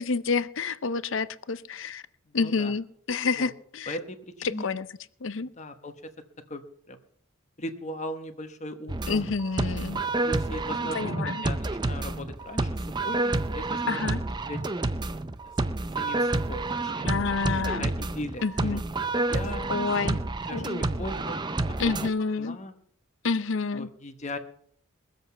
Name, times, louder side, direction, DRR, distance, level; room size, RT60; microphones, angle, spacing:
voice 1, 0.0-2.0 2.3-4.0 4.6-4.9 5.2-5.5 9.1-10.0 10.9-11.5 13.9-14.2 17.0-17.9 18.4-18.8 19.7-20.2 20.5-20.8 21.8-22.6 23.2-23.9, left 4 dB, 60° left, 15 dB, 0.6 m, -28 dB
voice 2, 2.3-2.7 3.4-3.5 3.9-4.7 5.4-5.9 6.5-7.0 7.6-9.2 10.2-12.7 13.0-14.1 14.5-14.6 16.0-17.0 17.3-17.4 17.8-18.8 19.2-19.7 20.5-21.9 22.4-22.7 23.7-24.4, left 1 dB, 35° left, 7 dB, 1.1 m, -38 dB
sound 1, 8.9-22.1, right 2 dB, 20° right, 0.5 m, -29 dB
22.0 x 7.9 x 5.6 m, 0.64 s
head